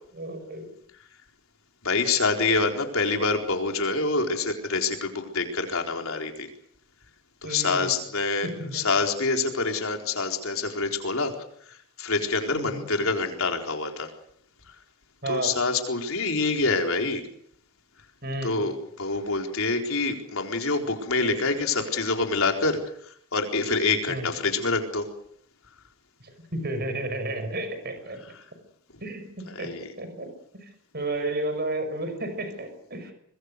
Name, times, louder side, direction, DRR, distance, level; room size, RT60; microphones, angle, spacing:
voice 1, 0.1-0.6 7.4-7.9 8.4-8.9 12.5-12.8 15.2-15.5 18.2-18.5 24.1-24.3 26.2-28.2 29.0-30.3 30.5-33.1, right 1 dB, 45° right, 8 dB, 6.1 m, -32 dB
voice 2, 1.8-6.5 7.4-11.3 11.6-14.1 14.7-14.8 15.3-17.3 18.4-25.1 29.5-29.9, left 3 dB, 70° left, 4 dB, 4.3 m, -26 dB
25.0 x 22.0 x 6.6 m, 0.65 s
head